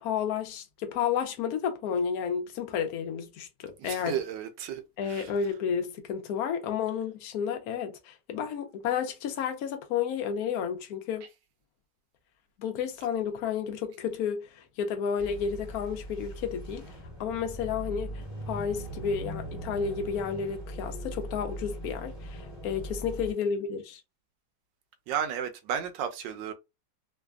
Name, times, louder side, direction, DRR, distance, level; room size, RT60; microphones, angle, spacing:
voice 1, 0.0-4.2 5.0-11.3 12.6-16.8 17.2-24.0, left 7 dB, 75° left, 0.8 m, -31 dB
voice 2, 3.8-5.3 25.1-26.5, right 9 dB, 75° right, 1.2 m, -33 dB
sound 1, 15.2-23.3, right 1 dB, 20° left, 0.7 m, -40 dB
3.2 x 2.1 x 2.3 m
omnidirectional pair, 2.2 m